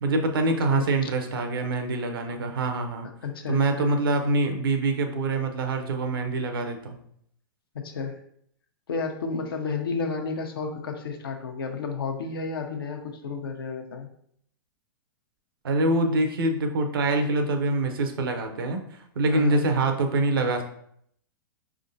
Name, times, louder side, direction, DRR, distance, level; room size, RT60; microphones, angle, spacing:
voice 1, 0.0-3.1 3.5-7.0 15.6-20.6, right 2 dB, 80° right, 5 dB, 0.8 m, -25 dB
voice 2, 3.0-3.9 7.7-8.2 8.9-14.1 19.3-19.6, left 4 dB, 80° left, 4 dB, 0.8 m, -32 dB
5.1 x 3.5 x 2.7 m, 0.69 s
hypercardioid pair, 115°, 12 cm